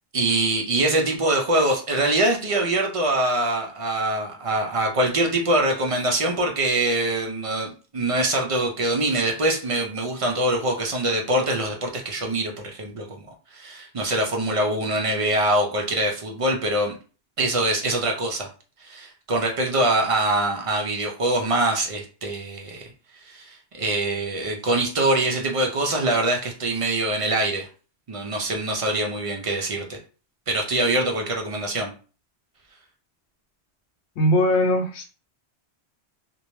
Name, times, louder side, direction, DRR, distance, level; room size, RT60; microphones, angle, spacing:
voice 1, 0.1-13.2 13.5-16.9 17.4-18.5 18.8-22.9 23.3-27.7 28.1-30.0 30.5-31.9, right 1 dB, 55° right, 1 dB, 0.4 m, -24 dB
voice 2, 34.2-35.0, left 1 dB, 80° left, 4 dB, 0.9 m, -20 dB
2.6 x 2.0 x 3.0 m, 0.36 s
omnidirectional pair, 1.1 m